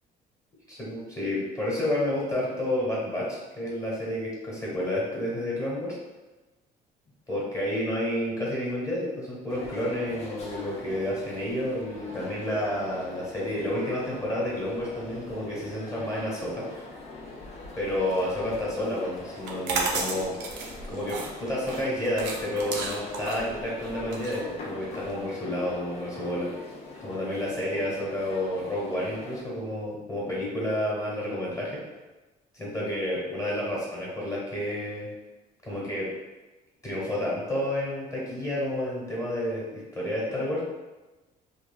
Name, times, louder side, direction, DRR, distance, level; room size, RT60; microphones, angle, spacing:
voice 1, 0.7-6.0 7.3-16.9 17.7-20.4 20.9-26.5 27.0-31.8 32.5-35.1 35.6-36.1 36.8-40.6, left 1 dB, 20° left, -7 dB, 1.0 m, -30 dB
sound 1, 9.5-29.4, left 3 dB, 40° left, 0.5 m, -42 dB
sound 2, 19.4-25.1, right 4 dB, 85° right, 0.5 m, -33 dB
3.0 x 2.3 x 2.3 m, 1.1 s
cardioid pair, 110°, 17 cm